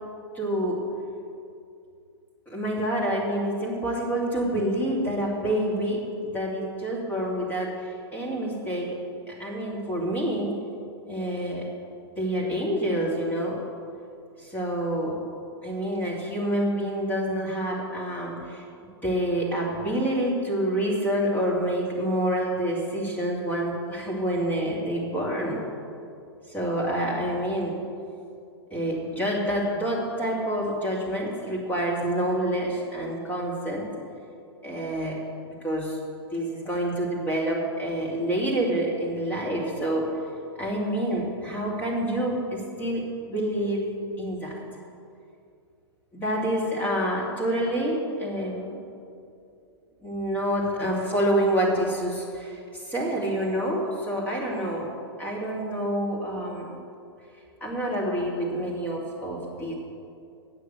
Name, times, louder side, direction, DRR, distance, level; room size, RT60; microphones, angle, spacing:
voice 1, 0.3-0.8 2.5-9.0 9.3-10.5 11.0-11.7 12.2-13.6 14.4-15.2 15.6-18.6 19.0-25.6 26.5-27.8 28.7-33.9 34.6-36.0 36.3-40.1 40.6-43.9 44.2-44.6 46.1-48.8 50.0-54.9 55.2-56.7 57.6-59.7, right 1 dB, 10° left, -3 dB, 2.5 m, -27 dB
8.7 x 6.5 x 8.3 m, 2.5 s
figure-of-eight pair, 105°, 14 cm